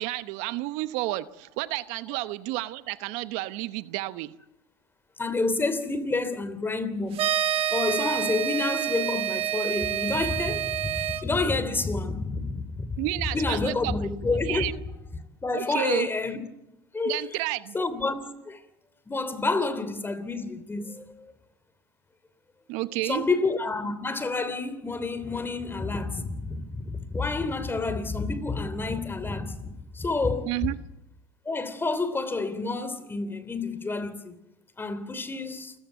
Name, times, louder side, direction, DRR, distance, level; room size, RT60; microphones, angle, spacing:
voice 1, 0.0-4.3 13.0-13.9 14.5-14.7 15.5-16.1 17.1-17.7 22.7-23.2 30.4-30.8, right 18 dB, 65° right, 0.9 m, -30 dB
voice 2, 5.2-7.3 7.7-13.0 13.3-14.7 15.4-16.4 16.9-17.2 17.7-18.6 19.1-21.3 23.0-30.7 31.4-34.3 34.8-35.7, left 3 dB, 15° left, 3.1 m, -29 dB
sound 1, 7.1-11.2, right 11 dB, 50° right, 1.9 m, -28 dB
28.0 x 15.0 x 8.1 m
hypercardioid pair, 90°, 13 cm